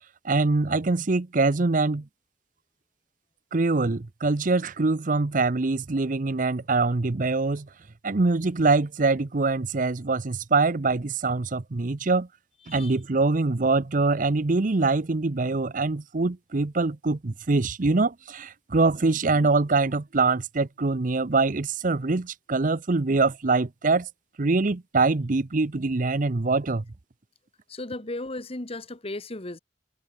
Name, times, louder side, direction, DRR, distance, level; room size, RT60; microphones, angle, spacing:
voice 1, 0.2-2.1 3.5-7.7 8.0-12.3 12.7-24.1 24.4-26.8, right 3 dB, 50° right, 0.7 m, -24 dB
voice 2, 27.7-29.6, left 2 dB, 35° left, 1.5 m, -35 dB
head